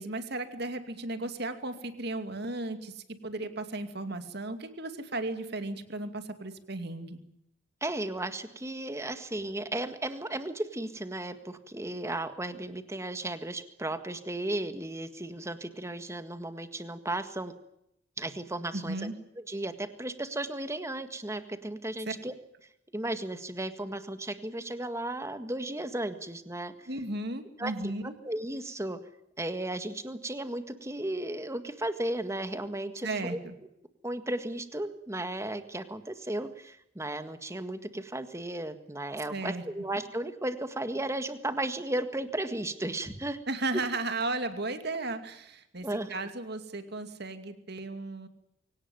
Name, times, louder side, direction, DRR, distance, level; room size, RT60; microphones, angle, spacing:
voice 1, 0.0-7.2 18.7-19.1 22.1-22.2 26.9-28.1 33.0-33.6 39.3-39.6 43.5-48.3, right 2 dB, 55° right, 8 dB, 2.5 m, -35 dB
voice 2, 7.8-17.5 18.2-19.1 19.5-22.3 22.9-26.7 27.6-27.9 28.2-29.0 29.4-33.4 34.0-43.4 45.8-46.3, right 1 dB, 15° right, 9 dB, 1.7 m, -35 dB
23.5 x 18.0 x 9.2 m, 0.80 s
head